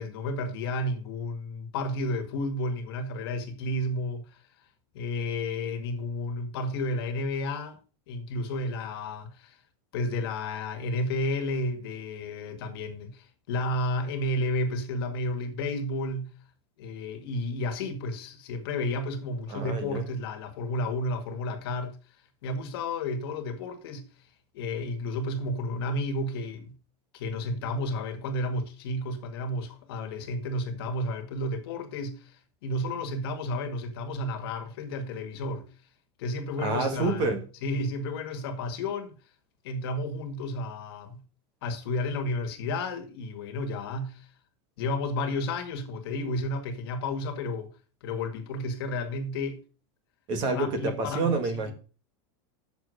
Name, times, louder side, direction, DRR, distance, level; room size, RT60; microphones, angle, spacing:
voice 1, 0.0-4.4 4.9-7.8 8.1-9.6 9.9-16.3 16.8-22.0 22.4-24.1 24.5-26.7 27.1-32.3 32.6-35.6 36.2-37.3 37.6-39.1 39.6-41.2 41.6-44.3 44.8-47.7 48.0-49.6 50.5-51.3 51.6-51.7, left 1 dB, 60° left, 1.9 m, -32 dB
voice 2, 19.5-20.0 36.6-37.4 50.3-51.7, right 3 dB, 35° right, 1.8 m, -28 dB
8.0 x 6.7 x 6.5 m
supercardioid pair, 175°, 14 cm